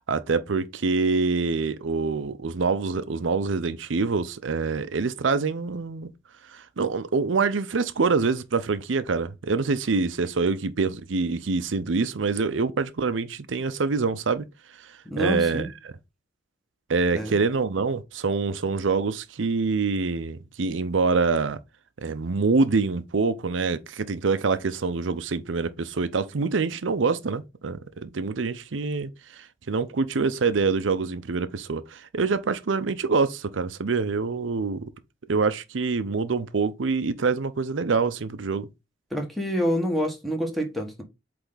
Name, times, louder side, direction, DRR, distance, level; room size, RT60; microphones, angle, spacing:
voice 1, 0.1-6.1 6.5-14.5 15.2-15.7 16.9-21.6 22.0-34.9 35.3-38.7, right 4 dB, 85° right, 0.6 m, -25 dB
voice 2, 15.0-15.7 17.1-17.4 39.1-41.0, equal, ahead, 1.4 m, -27 dB
8.1 x 3.4 x 4.0 m
head